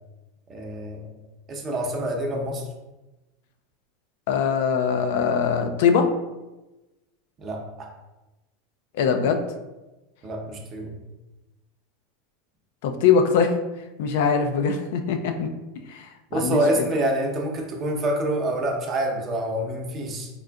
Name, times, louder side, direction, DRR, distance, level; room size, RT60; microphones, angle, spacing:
voice 1, 0.5-1.1 1.5-2.6 7.4-7.9 10.2-11.0 16.3-20.3, right 1 dB, 35° right, 1 dB, 0.7 m, -26 dB
voice 2, 4.3-6.1 8.9-9.4 12.8-13.6 14.0-15.5 15.9-16.1 16.3-16.8, left 6 dB, 70° left, 6 dB, 0.3 m, -22 dB
3.7 x 2.5 x 2.2 m, 1.1 s
hypercardioid pair, 95°, 0 cm